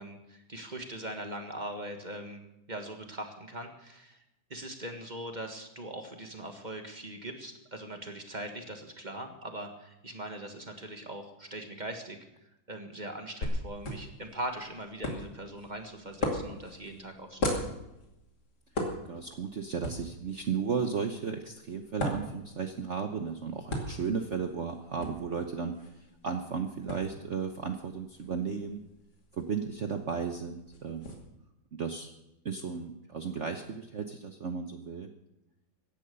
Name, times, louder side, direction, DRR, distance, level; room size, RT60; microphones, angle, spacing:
voice 1, 0.0-4.2 4.5-12.2 12.7-17.6, right 1 dB, 25° right, 5 dB, 1.6 m, -41 dB
sound 1, 13.4-31.1, left 1 dB, 60° left, 3.1 m, -39 dB
voice 2, 19.1-28.8 29.3-31.1 31.7-32.1 32.4-35.1, right 5 dB, 50° right, 5 dB, 1.0 m, -34 dB
16.5 x 10.5 x 6.8 m, 0.91 s
omnidirectional pair, 2.1 m